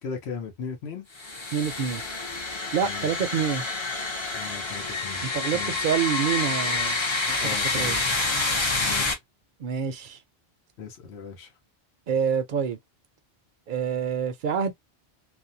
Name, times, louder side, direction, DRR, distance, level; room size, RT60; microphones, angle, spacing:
voice 1, 0.0-1.0 2.8-3.3 4.3-5.2 5.5-5.8 7.4-8.0 8.8-9.2 10.8-11.5, left 6 dB, 80° left, 1.0 m, -37 dB
sound 1, 1.1-9.1, left 3 dB, 30° left, 0.6 m, -28 dB
voice 2, 1.5-2.0 2.7-3.6 5.2-7.0 7.3-8.0 9.6-10.2 12.1-12.8 13.7-14.7, right 7 dB, 60° right, 0.6 m, -27 dB
2.5 x 2.1 x 2.6 m
omnidirectional pair, 1.1 m